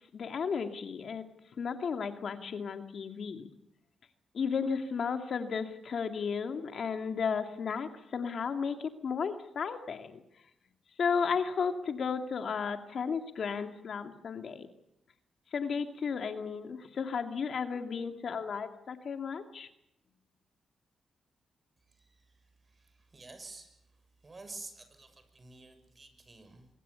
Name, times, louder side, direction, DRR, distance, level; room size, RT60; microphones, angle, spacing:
voice 1, 0.1-1.2 1.6-3.5 4.3-10.2 11.0-14.7 15.5-19.7, left 6 dB, 65° left, 6 dB, 2.4 m, -34 dB
voice 2, 21.8-26.7, right 3 dB, 35° right, 9 dB, 6.6 m, -51 dB
24.0 x 22.0 x 7.1 m, 0.84 s
supercardioid pair, 60°, 0 cm